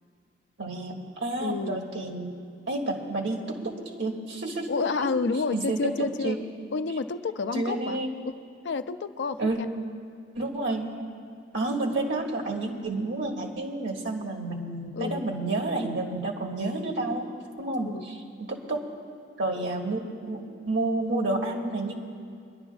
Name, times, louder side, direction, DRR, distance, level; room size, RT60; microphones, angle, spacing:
voice 1, 0.6-2.4 2.7-4.7 5.0-5.1 5.5-6.4 7.5-8.1 9.4-9.6 10.4-11.0 11.5-17.3 17.6-18.8 19.4-20.0 20.3-21.9, right 2 dB, 85° right, -1 dB, 1.7 m, -30 dB
voice 2, 1.4-1.8 4.7-6.4 6.7-8.0 8.6-9.4 14.9-15.2 17.8-18.0, left 4 dB, 75° left, 11 dB, 0.4 m, -29 dB
25.0 x 11.0 x 2.4 m, 2.3 s
head